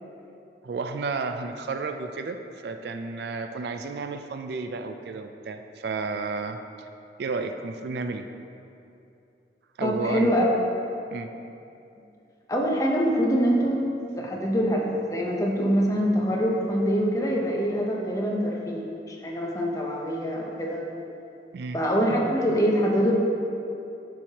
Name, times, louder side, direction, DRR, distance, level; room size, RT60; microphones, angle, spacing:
voice 1, 0.6-6.6 7.2-8.3 9.8-10.3 11.1-11.3 21.5-21.8, right 4 dB, 65° right, 7 dB, 0.3 m, -32 dB
voice 2, 9.8-10.5 12.5-13.8 14.2-20.9 21.7-23.1, equal, 20° left, -2 dB, 0.7 m, -24 dB
11.5 x 4.6 x 2.9 m, 2.7 s
head